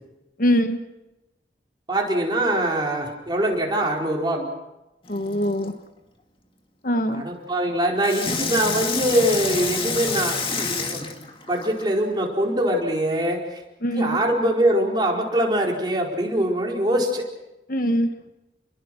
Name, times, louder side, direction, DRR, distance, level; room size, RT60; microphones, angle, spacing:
voice 1, 0.4-0.8 5.1-5.7 6.8-7.2 13.8-14.2 17.7-18.1, equal, 50° left, 8 dB, 1.3 m, -22 dB
voice 2, 1.9-4.5 7.1-11.1 11.5-13.6 13.9-17.2, right 1 dB, 25° right, -1 dB, 4.5 m, -23 dB
Water tap faucet / Sink (filling or washing), 5.0-5.7 8.0-12.0 12.6-12.7, left 4 dB, 30° left, 2.2 m, -28 dB
29.5 x 22.5 x 6.3 m, 0.97 s
head